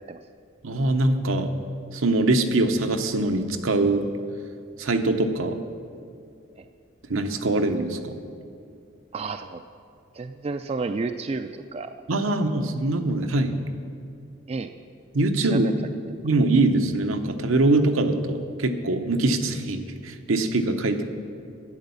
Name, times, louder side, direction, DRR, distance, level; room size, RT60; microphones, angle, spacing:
voice 1, 0.6-1.5 1.9-4.1 4.8-5.6 7.1-8.2 12.1-13.6 15.1-15.7 16.2-21.1, right 2 dB, 85° right, 6 dB, 0.9 m, -23 dB
voice 2, 9.1-9.6 10.1-12.0 14.5-14.7 15.4-15.7, right 4 dB, 30° right, 8 dB, 0.3 m, -31 dB
12.0 x 8.9 x 7.0 m, 2.4 s
head